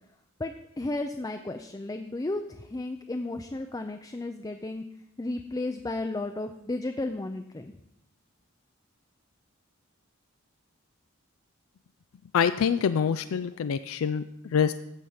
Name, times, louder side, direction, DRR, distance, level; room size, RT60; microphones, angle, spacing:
voice 1, 0.4-4.8 5.2-7.7, left 2 dB, 20° left, 6 dB, 0.5 m, -33 dB
voice 2, 12.3-14.2 14.5-14.7, left 7 dB, 80° left, 11 dB, 0.4 m, -25 dB
14.5 x 4.9 x 5.7 m, 0.83 s
head